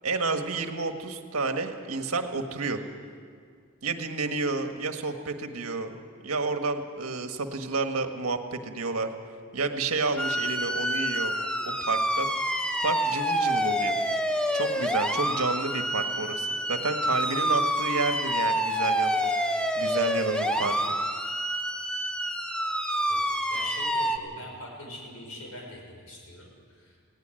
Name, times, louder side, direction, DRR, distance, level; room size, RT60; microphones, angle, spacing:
voice 1, 0.0-2.8 3.8-6.0 6.2-9.1 9.5-11.3 11.8-12.3 12.8-13.9 14.5-20.8, right 3 dB, 75° right, 6 dB, 1.5 m, -30 dB
sound 1, 10.2-24.2, equal, 5° left, 0.9 m, -27 dB
voice 2, 23.5-27.0, left 1 dB, 70° left, 0 dB, 6.0 m, -43 dB
19.5 x 17.5 x 7.8 m, 2.1 s
head